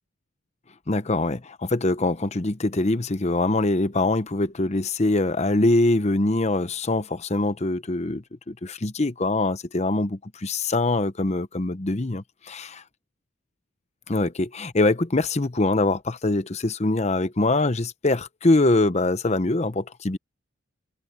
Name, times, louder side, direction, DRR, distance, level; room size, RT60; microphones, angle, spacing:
voice 1, 0.9-12.8 14.1-20.2, left 2 dB, 35° left, 0.8 m, -23 dB
head